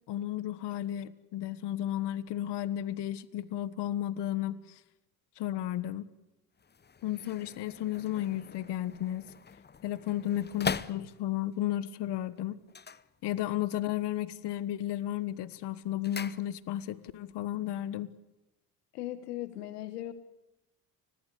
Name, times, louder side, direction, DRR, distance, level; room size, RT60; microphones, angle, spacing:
voice 1, 0.1-4.8 5.4-6.1 7.0-9.3 9.8-12.6 13.2-18.1, left 12 dB, 60° left, 16 dB, 1.4 m, -33 dB
sound 1, 6.5-11.6 12.6-13.8 14.0-14.5 14.9-17.0 17.2-17.3, left 6 dB, 20° left, 0.9 m, -41 dB
voice 2, 18.9-20.1, left 14 dB, 90° left, 13 dB, 1.2 m, -38 dB
29.5 x 21.0 x 8.3 m, 0.97 s
hypercardioid pair, 55°, 46 cm